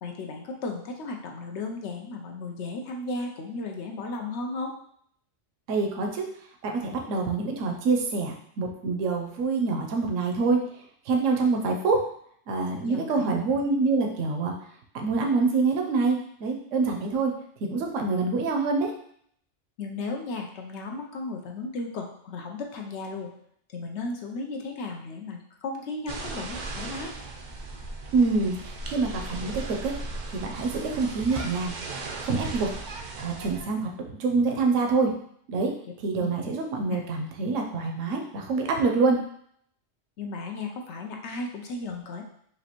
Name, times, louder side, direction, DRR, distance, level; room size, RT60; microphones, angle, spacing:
voice 1, 0.0-4.8 12.7-13.3 19.8-23.3 23.7-27.1 36.2-36.3 36.6-37.0 40.2-42.2, left 3 dB, 65° left, 2 dB, 0.9 m, -35 dB
voice 2, 5.7-6.3 6.6-10.6 11.1-12.0 12.5-14.5 14.9-17.3 17.7-18.9 28.1-29.9 30.3-31.7 32.2-32.7 33.2-33.9 34.2-35.1 35.5-35.7 36.0-39.2, right 4 dB, 80° right, 2 dB, 1.0 m, -26 dB
sound 1, 26.1-33.7, right 3 dB, 55° right, 0.5 m, -37 dB
4.9 x 2.6 x 2.9 m, 0.65 s
omnidirectional pair, 1.3 m